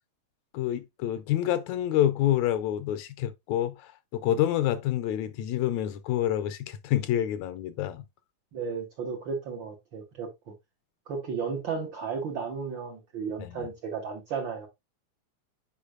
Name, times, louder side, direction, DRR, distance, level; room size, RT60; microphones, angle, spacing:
voice 1, 0.5-8.0 13.4-13.7, left 12 dB, 80° left, 1.8 m, -28 dB
voice 2, 8.5-10.5 11.1-14.7, right 5 dB, 60° right, 1.3 m, -34 dB
8.3 x 5.3 x 2.4 m
omnidirectional pair, 3.5 m